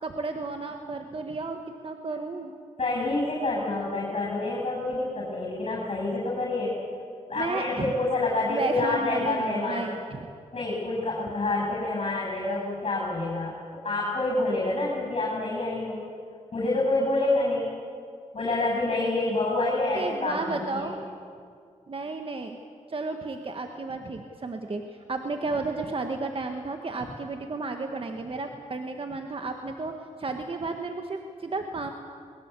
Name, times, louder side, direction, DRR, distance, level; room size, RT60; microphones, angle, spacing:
voice 1, 0.0-2.5 7.4-7.9 8.5-10.3 19.9-21.0 21.9-22.6 22.9-29.9 30.2-31.9, right 3 dB, 45° right, 5 dB, 1.7 m, -33 dB
voice 2, 2.8-6.8 7.3-9.9 10.5-13.5 13.8-16.1 16.5-17.7 18.3-20.9, left 2 dB, 50° left, -3 dB, 7.8 m, -27 dB
22.0 x 21.0 x 8.4 m, 2.2 s
cardioid pair, 75°, 13 cm